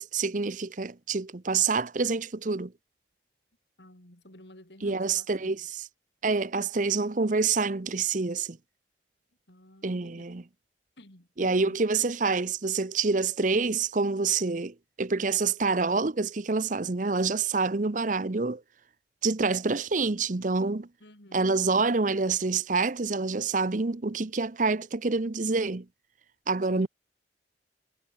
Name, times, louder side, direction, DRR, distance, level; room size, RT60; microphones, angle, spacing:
voice 1, 0.0-2.7 4.8-5.8 6.2-8.6 9.8-10.4 11.4-18.6 19.2-20.9 21.3-25.9 26.5-26.9, right 4 dB, 45° right, 0.8 m, -27 dB
voice 2, 3.8-5.6 9.5-10.3 11.0-11.8 21.0-21.6 26.7-26.9, left 1 dB, 70° left, 5.3 m, -52 dB
head